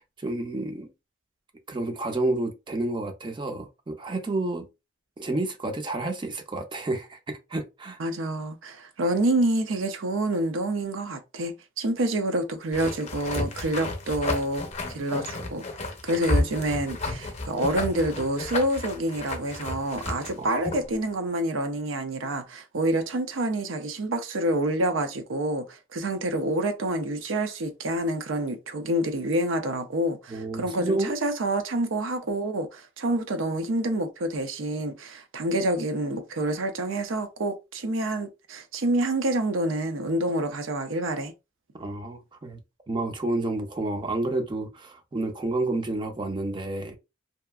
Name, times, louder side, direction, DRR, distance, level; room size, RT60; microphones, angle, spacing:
voice 1, 0.2-0.9 1.7-4.7 5.2-8.0 20.4-20.5 30.3-31.1 41.8-42.6 42.9-47.0, right 2 dB, 25° right, 0.4 m, -30 dB
voice 2, 8.0-15.6 16.0-41.3, right 1 dB, 85° right, 0.6 m, -27 dB
sound 1, 12.7-20.9, left 2 dB, 35° left, 0.6 m, -32 dB
2.7 x 2.4 x 2.3 m
head